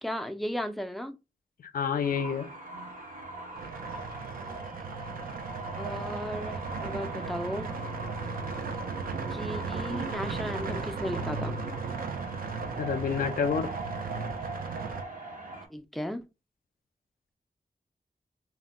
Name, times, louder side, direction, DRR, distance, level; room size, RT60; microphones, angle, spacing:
voice 1, 0.0-1.1 5.8-7.7 9.3-11.6 15.7-16.3, equal, ahead, 0.3 m, -35 dB
voice 2, 1.7-2.5 12.8-13.7, left 6 dB, 85° left, 0.4 m, -28 dB
sound 1, 2.0-15.7, right 2 dB, 70° right, 0.8 m, -41 dB
sound 2, 3.6-15.0, right 4 dB, 90° right, 0.4 m, -36 dB
2.1 x 2.1 x 3.5 m
wide cardioid pair, 115°, 14 cm